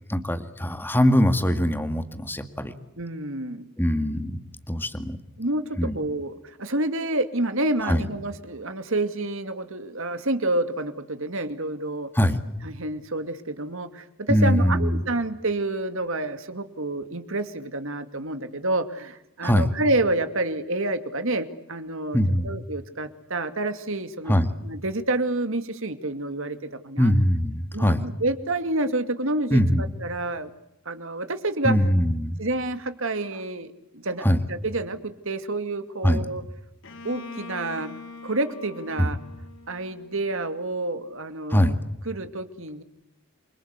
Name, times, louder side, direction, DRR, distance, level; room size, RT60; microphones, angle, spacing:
voice 1, 0.1-2.7 3.8-4.4 4.7-5.2 5.8-5.9 7.8-8.0 12.1-12.4 14.3-15.0 19.4-19.7 22.1-22.5 24.3-24.5 27.0-28.0 29.5-29.8 31.6-32.3 34.2-34.4 36.0-36.3 39.0-39.1 41.5-41.8, equal, 10° left, 8 dB, 2.0 m, -22 dB
voice 2, 3.0-3.7 5.4-12.1 12.6-22.2 22.4-24.4 24.6-27.1 27.7-30.5 30.9-31.8 32.4-33.7 33.9-36.4 37.0-39.2 39.7-41.8 42.1-42.8, right 2 dB, 65° right, 9 dB, 2.5 m, -28 dB
Bowed string instrument, 36.8-40.6, left 4 dB, 60° left, 4.0 m, -43 dB
29.0 x 24.5 x 8.3 m, 0.82 s
head